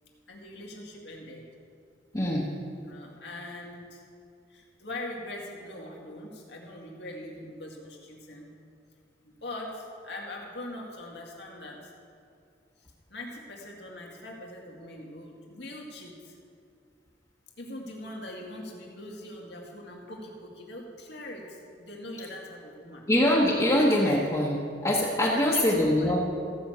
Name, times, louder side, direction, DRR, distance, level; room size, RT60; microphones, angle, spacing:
voice 1, 0.3-1.4 2.7-4.0 4.5-8.5 9.2-11.9 12.8-16.4 17.6-23.1 24.0-24.2 25.4-26.2, left 1 dB, 75° left, -1 dB, 2.2 m, -42 dB
voice 2, 2.1-2.5 23.1-24.5 24.8-26.2, left 1 dB, 20° left, -5 dB, 1.2 m, -23 dB
15.0 x 6.1 x 8.0 m, 2.5 s
head